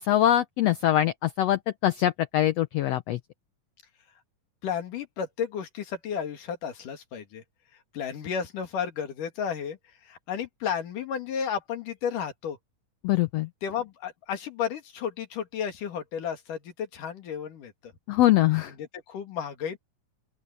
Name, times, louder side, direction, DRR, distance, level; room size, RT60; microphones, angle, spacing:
voice 1, 0.0-3.2 13.0-13.5 18.1-18.7, left 13 dB, 90° left, 1.4 m, -23 dB
voice 2, 4.6-7.4 7.9-9.8 10.0-12.6 13.6-17.9 18.7-19.8, left 7 dB, 75° left, 3.7 m, -33 dB
open air
omnidirectional pair, 3.8 m